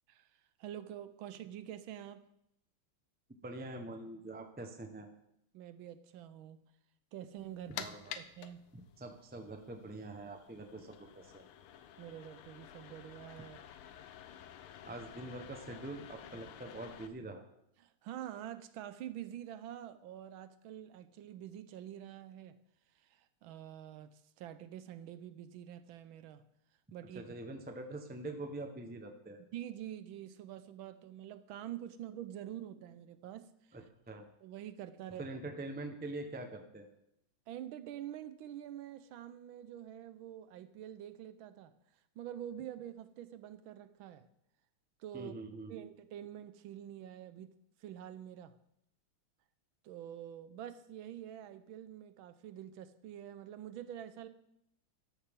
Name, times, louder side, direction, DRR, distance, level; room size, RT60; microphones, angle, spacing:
voice 1, 0.1-2.3 5.5-6.6 7.1-7.9 8.2-8.7 12.0-13.6 17.8-22.6 22.9-26.4 26.9-27.2 29.5-33.8 34.4-35.3 37.5-41.7 42.2-44.3 45.0-45.3 45.7-47.5 47.8-48.6 49.8-54.3, right 11 dB, 75° right, 13 dB, 1.4 m, -46 dB
voice 2, 3.4-5.1 7.7-8.2 8.7-11.4 14.8-17.4 27.1-29.4 33.7-34.2 35.2-36.9 45.1-45.9, right 2 dB, 10° right, 4 dB, 0.5 m, -44 dB
sound 1, 7.4-17.1, left 9 dB, 85° left, 1.6 m, -51 dB
13.5 x 10.5 x 3.7 m, 0.78 s
omnidirectional pair, 2.3 m